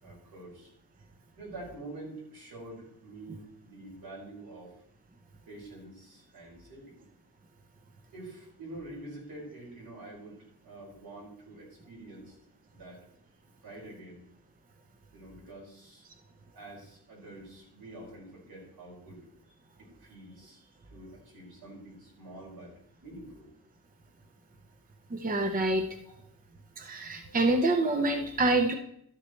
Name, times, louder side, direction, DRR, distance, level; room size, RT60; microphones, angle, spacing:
voice 1, 0.0-0.7 1.3-4.8 5.5-7.0 8.1-12.3 12.7-13.0 13.6-14.2 15.1-16.1 16.5-19.2 19.5-22.7 23.0-23.5 26.0-26.2 27.2-27.4, right 2 dB, 70° right, -3 dB, 5.1 m, -47 dB
voice 2, 25.1-25.9 26.8-28.7, right 2 dB, 25° right, 5 dB, 0.6 m, -26 dB
13.0 x 9.9 x 3.2 m, 0.74 s
wide cardioid pair, 175°, 37 cm